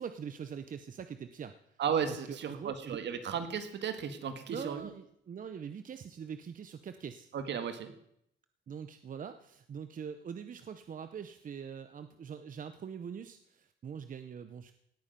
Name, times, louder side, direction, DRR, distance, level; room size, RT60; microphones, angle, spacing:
voice 1, 0.0-1.6 2.1-3.0 4.5-7.3 8.7-14.7, right 7 dB, 45° right, 10 dB, 0.8 m, -43 dB
voice 2, 1.8-4.9 7.3-7.9, right 7 dB, 65° right, 9 dB, 1.7 m, -34 dB
17.5 x 8.9 x 5.3 m, 0.73 s
cardioid pair, 95°, 20 cm